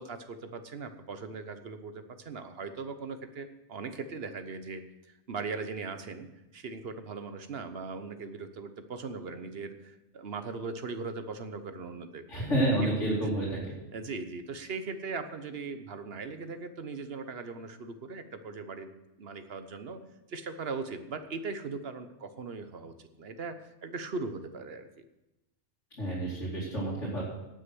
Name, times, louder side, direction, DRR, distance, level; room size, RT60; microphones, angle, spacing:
voice 1, 0.0-4.8 5.3-6.3 6.5-12.5 12.8-12.9 13.9-18.9 19.2-20.0 20.3-25.0, right 4 dB, 55° right, 9 dB, 1.2 m, -39 dB
voice 2, 12.3-13.7 26.0-27.2, right 1 dB, 80° left, -7 dB, 3.4 m, -29 dB
17.0 x 6.5 x 6.1 m, 0.98 s
omnidirectional pair, 1.3 m